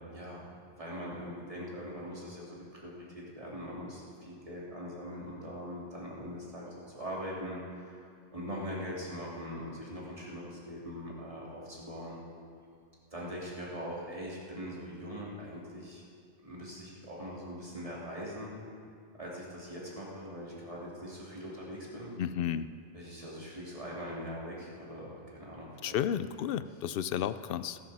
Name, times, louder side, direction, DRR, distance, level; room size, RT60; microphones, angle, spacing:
voice 1, 0.1-12.2 13.1-16.0 16.4-18.5 19.2-22.1 22.9-26.0, equal, 30° right, -5 dB, 2.9 m, -42 dB
voice 2, 22.2-22.7 25.8-27.8, left 9 dB, 65° left, 13 dB, 0.7 m, -32 dB
18.0 x 11.5 x 4.2 m, 2.4 s
omnidirectional pair, 1.2 m